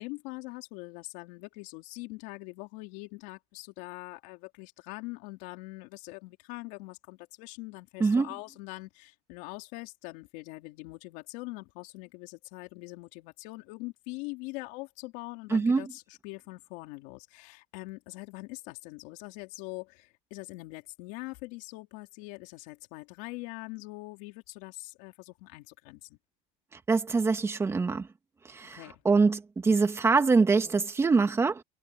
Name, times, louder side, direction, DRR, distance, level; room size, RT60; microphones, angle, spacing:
voice 1, 0.0-26.2 28.7-29.0, left 24 dB, 75° left, 4.3 m, -43 dB
voice 2, 15.5-15.8 26.9-28.1 28.5-28.8 29.0-31.6, right 4 dB, 15° right, 2.0 m, -24 dB
cardioid pair, 155°, 17 cm